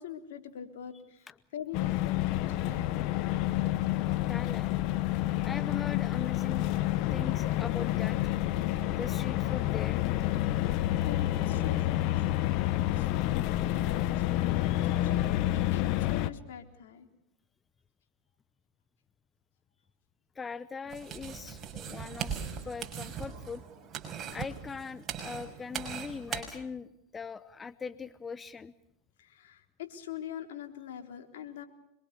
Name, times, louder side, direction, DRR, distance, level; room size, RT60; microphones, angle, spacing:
voice 1, 0.0-2.9 11.0-17.1 29.2-31.7, left 9 dB, 75° left, 5 dB, 3.7 m, -44 dB
sound 1, 1.7-16.3, left 14 dB, 50° left, 1.2 m, -29 dB
voice 2, 4.3-4.8 5.4-6.8 7.1-8.3 8.9-10.0 20.3-22.3 22.6-23.6 24.3-28.7, left 5 dB, 20° left, 16 dB, 0.9 m, -41 dB
sound 2, 20.9-26.4, right 7 dB, 30° right, 6.1 m, -39 dB
26.0 x 23.0 x 6.9 m, 0.85 s
hypercardioid pair, 115°, 0 cm